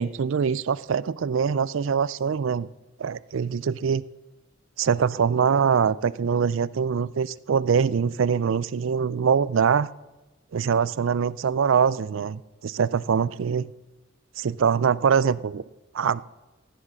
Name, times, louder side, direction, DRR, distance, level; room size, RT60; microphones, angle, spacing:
voice 1, 0.0-2.7 3.0-4.0 4.8-9.9 10.5-13.7 14.4-15.6 15.9-16.2, right 6 dB, 65° right, 19 dB, 0.4 m, -23 dB
15.0 x 9.8 x 6.4 m, 1.1 s
head